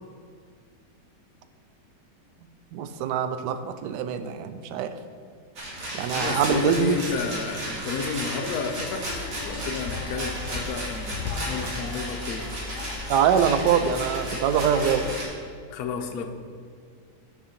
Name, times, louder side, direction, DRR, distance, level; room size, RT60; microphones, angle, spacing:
voice 1, 2.7-4.9 5.9-7.0 13.1-15.0, right 8 dB, 75° right, 10 dB, 1.2 m, -24 dB
Rattle, 5.6-15.2, right 1 dB, 50° right, 1.9 m, -34 dB
voice 2, 6.1-12.6 15.7-16.3, left 5 dB, 65° left, 5 dB, 1.0 m, -32 dB
sound 1, 9.1-15.1, left 5 dB, 80° left, 0.6 m, -37 dB
6.4 x 5.4 x 5.8 m, 2.1 s
omnidirectional pair, 1.9 m